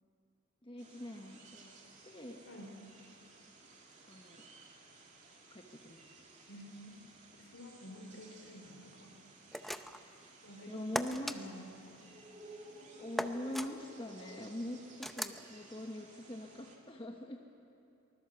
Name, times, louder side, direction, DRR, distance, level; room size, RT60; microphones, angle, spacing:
voice 1, 0.6-1.7 2.0-2.4 4.1-4.4 5.5-6.1 10.7-11.5 13.0-17.4, left 1 dB, 25° left, 2 dB, 1.2 m, -43 dB
sound 1, 0.8-16.8, right 2 dB, 35° right, 2.8 m, -56 dB
voice 2, 6.5-7.1 7.4-9.1 10.4-10.9 11.2-12.0, equal, 70° left, 1 dB, 4.4 m, -51 dB
sound 2, 9.5-10.1 11.0-11.4 13.2-13.7 15.0-15.4, equal, ahead, 0.6 m, -38 dB
24.0 x 20.5 x 7.0 m, 2.7 s
head